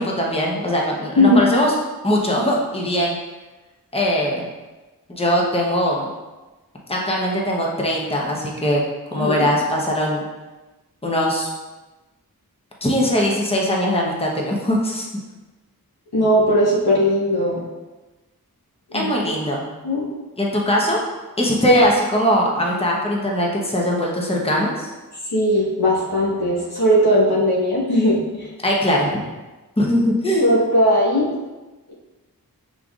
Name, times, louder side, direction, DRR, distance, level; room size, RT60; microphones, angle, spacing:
voice 1, 0.0-1.7 2.0-3.2 3.9-4.4 5.1-6.1 6.9-8.8 9.1-10.2 11.0-11.5 12.8-15.1 18.9-19.6 20.4-21.0 21.4-24.9 28.6-29.1 29.8-30.5, equal, 15° left, -2 dB, 0.8 m, -21 dB
voice 2, 9.1-9.4 16.1-17.6 18.9-19.3 19.8-20.1 21.7-21.8 25.3-28.5 30.4-31.3, equal, 90° left, -6 dB, 1.2 m, -18 dB
5.4 x 3.8 x 2.4 m, 1.2 s
wide cardioid pair, 50°, 37 cm